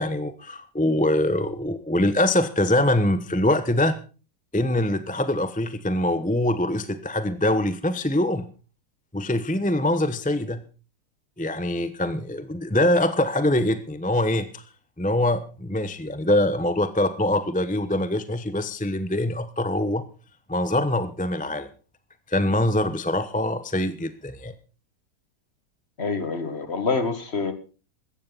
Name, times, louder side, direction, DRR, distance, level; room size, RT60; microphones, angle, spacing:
voice 1, 0.0-4.0 4.5-8.5 9.1-10.6 11.4-14.6 15.0-20.1 20.5-21.7 22.3-24.5, left 1 dB, 5° left, 12 dB, 0.7 m, -24 dB
voice 2, 26.0-27.5, left 4 dB, 35° left, 10 dB, 1.9 m, -26 dB
16.5 x 13.5 x 4.1 m, 0.34 s
omnidirectional pair, 1.9 m